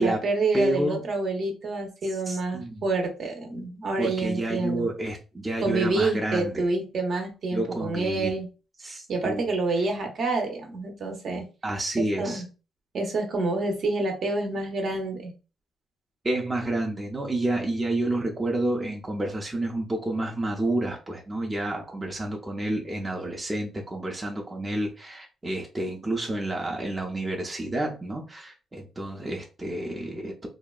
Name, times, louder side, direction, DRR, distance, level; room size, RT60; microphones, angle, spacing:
voice 1, 0.0-4.9 5.6-8.5 9.1-11.4 12.0-12.4 12.9-15.3, right 3 dB, 55° right, 0.7 m, -28 dB
voice 2, 0.5-1.0 2.3-2.8 4.0-6.7 7.5-8.3 8.8-9.5 11.6-12.4 16.2-30.5, right 1 dB, 20° right, 0.5 m, -29 dB
2.7 x 2.1 x 2.3 m
cardioid pair, 90°, 0 cm